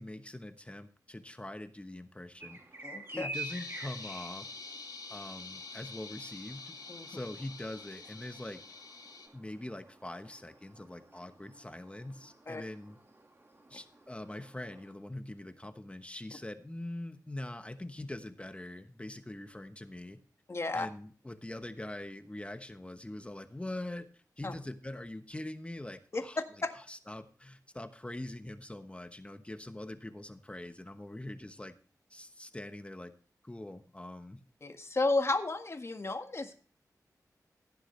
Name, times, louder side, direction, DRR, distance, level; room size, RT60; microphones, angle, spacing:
voice 1, 0.0-2.6 3.1-4.5 5.1-6.8 7.1-8.6 9.3-13.0 13.7-20.2 20.7-26.4 26.9-31.7 32.1-33.1 33.4-34.4, left 1 dB, 15° left, 9 dB, 1.1 m, -43 dB
sound 1, 2.4-14.9, right 2 dB, 35° right, 2.6 m, -49 dB
voice 2, 2.8-3.3 6.9-7.1 12.5-12.6 20.5-20.9 24.4-24.5 26.1-26.2 26.6-26.7 34.6-36.6, left 2 dB, 40° left, 6 dB, 1.7 m, -32 dB
sound 2, 3.3-9.3, left 4 dB, 80° left, 2.5 m, -46 dB
15.5 x 9.9 x 3.3 m, 0.41 s
wide cardioid pair, 80°, 7 cm